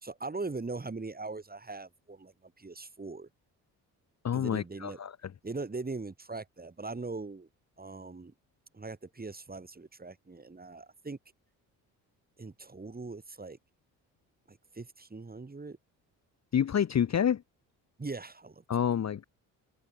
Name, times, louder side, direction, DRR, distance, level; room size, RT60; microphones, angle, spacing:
voice 1, 0.0-3.3 4.3-5.0 5.4-7.5 7.8-8.3 8.7-11.2 12.4-13.6 14.5-15.8 18.0-18.6, right 3 dB, 20° right, 2.0 m, -40 dB
voice 2, 4.2-5.2 16.5-17.4 18.7-19.2, left 9 dB, 35° left, 0.9 m, -28 dB
open air
hypercardioid pair, 50°, 46 cm